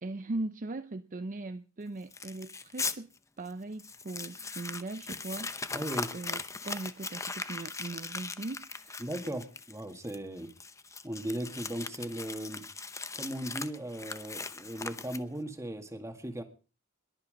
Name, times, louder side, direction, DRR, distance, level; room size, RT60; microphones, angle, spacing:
voice 1, 0.0-5.7 6.1-9.0, right 2 dB, 40° right, 0.6 m, -39 dB
Crumpling crinkling, 2.1-3.0 3.5-3.6 3.8-15.5, left 4 dB, 15° left, 0.7 m, -39 dB
voice 2, 5.7-6.1 9.0-10.5 11.0-12.6 13.1-16.4, right 1 dB, 15° right, 1.9 m, -37 dB
21.5 x 8.6 x 5.1 m
head